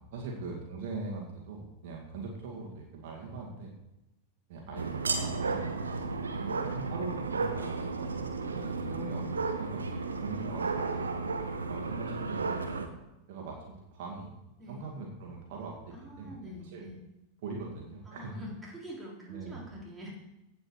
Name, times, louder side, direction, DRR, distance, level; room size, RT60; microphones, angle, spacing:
voice 1, 0.0-3.7 4.5-6.1 6.6-9.2 9.6-11.1 11.7-12.8 13.3-14.3 14.7-16.9 17.4-18.3 19.3-19.6, right 3 dB, 50° right, -1 dB, 2.2 m, -41 dB
sound 1, 4.8-12.9, right 4 dB, 75° right, 1.1 m, -33 dB
voice 2, 6.3-7.0 8.6-8.9 14.6-14.9 15.9-17.0 18.1-20.2, left 1 dB, 5° right, -5 dB, 3.7 m, -46 dB
16.5 x 5.6 x 4.6 m, 0.93 s
figure-of-eight pair, 90°, 0 cm